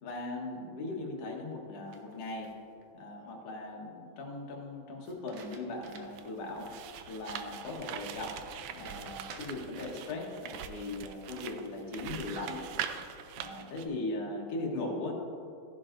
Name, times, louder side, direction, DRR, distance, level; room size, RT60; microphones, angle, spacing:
voice 1, 0.0-2.6 2.9-6.8 7.1-8.3 8.7-12.6 13.4-15.1, left 2 dB, 55° left, -1 dB, 2.2 m, -39 dB
sound 1, 1.9-2.8 5.0-6.3 6.7-6.8 8.8-10.1 11.1-12.3 12.7-13.3, right 5 dB, 70° right, 1.5 m, -52 dB
sound 2, 6.1-13.9, right 9 dB, 90° right, 1.4 m, -42 dB
15.5 x 11.0 x 2.6 m, 2.7 s
omnidirectional pair, 3.6 m